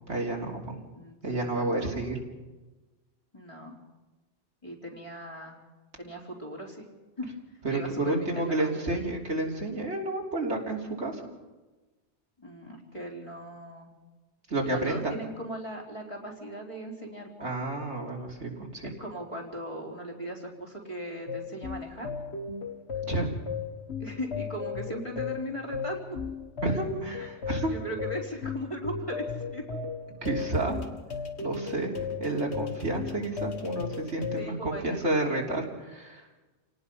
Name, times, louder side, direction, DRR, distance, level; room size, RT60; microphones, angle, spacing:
voice 1, 0.1-0.8 1.2-2.2 7.6-11.2 14.5-15.1 17.4-18.9 23.1-23.3 26.6-27.7 30.2-30.8 31.4-31.9 32.2-36.2, right 2 dB, 75° right, 0 dB, 3.6 m, -30 dB
voice 2, 0.9-1.9 3.3-3.8 4.6-5.6 6.0-6.9 7.2-7.3 7.7-9.0 12.4-13.9 14.7-17.5 18.8-22.2 24.0-26.2 27.2-27.3 27.7-29.2 29.5-29.6 34.4-35.4, right 1 dB, 25° left, -1 dB, 4.1 m, -38 dB
sound 1, 21.3-34.5, left 5 dB, 70° left, 2.0 m, -36 dB
29.0 x 18.5 x 5.6 m, 1.2 s
omnidirectional pair, 1.2 m